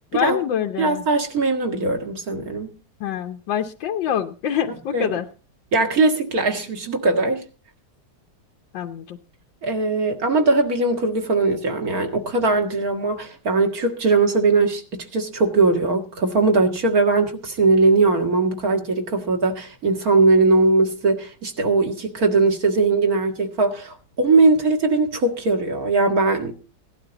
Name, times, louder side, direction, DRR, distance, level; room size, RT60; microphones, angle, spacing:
voice 1, 0.1-1.0 3.0-5.3 8.7-9.2, left 9 dB, 85° left, 1.6 m, -25 dB
voice 2, 0.8-2.7 4.9-5.1 5.7-7.4 9.6-26.5, right 3 dB, 50° right, 2.3 m, -20 dB
17.5 x 11.5 x 4.0 m
omnidirectional pair, 2.0 m